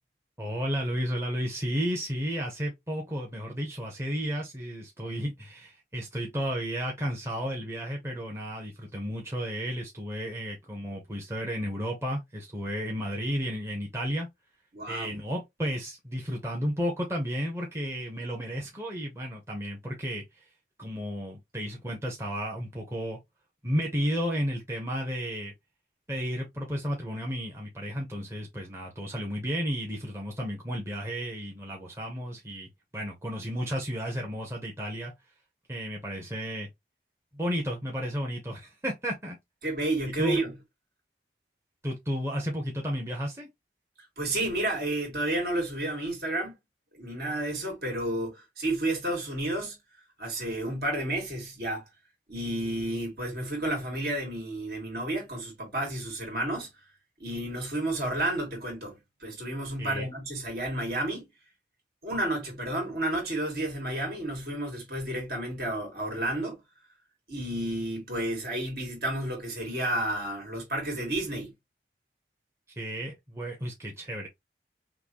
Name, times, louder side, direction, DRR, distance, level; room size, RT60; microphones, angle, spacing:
voice 1, 0.4-14.3 14.9-20.4 20.8-23.2 23.6-25.5 26.1-35.1 35.7-36.7 37.3-39.4 40.2-40.4 41.8-43.5 59.8-60.1 72.8-74.3, equal, 15° right, 0.9 m, -33 dB
voice 2, 14.7-15.1 39.6-40.5 44.2-46.5 46.9-49.8 50.2-51.8 52.3-56.7 57.2-61.3 62.0-66.6 67.3-71.5, right 1 dB, 60° right, 2.3 m, -31 dB
5.8 x 2.2 x 2.9 m
head